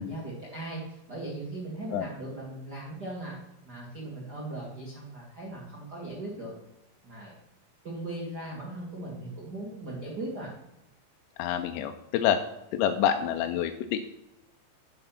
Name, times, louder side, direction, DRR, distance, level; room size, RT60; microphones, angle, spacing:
voice 1, 0.0-3.3 3.6-6.5 7.0-7.3 7.8-10.5, right 2 dB, 40° right, -3 dB, 1.4 m, -38 dB
voice 2, 11.4-12.4 12.7-14.0, left 9 dB, 80° left, 6 dB, 2.7 m, -27 dB
11.0 x 6.7 x 5.8 m, 0.87 s
omnidirectional pair, 5.3 m